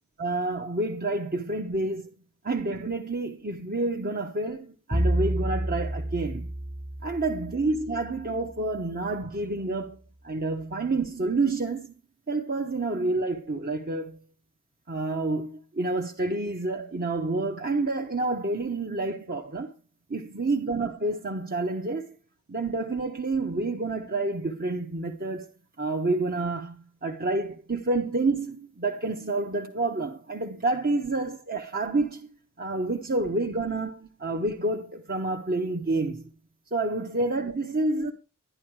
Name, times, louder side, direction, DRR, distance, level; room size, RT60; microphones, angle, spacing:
voice 1, 0.2-2.1 2.4-6.5 7.0-10.0 10.2-11.9 12.3-14.2 14.9-19.7 20.1-22.1 22.5-25.5 25.8-32.3 32.6-36.2 36.7-38.1, right 2 dB, 45° right, 1.1 m, -29 dB
Bowed string instrument, 4.9-9.1, right 1 dB, 25° right, 0.9 m, -30 dB
11.0 x 10.5 x 4.8 m
head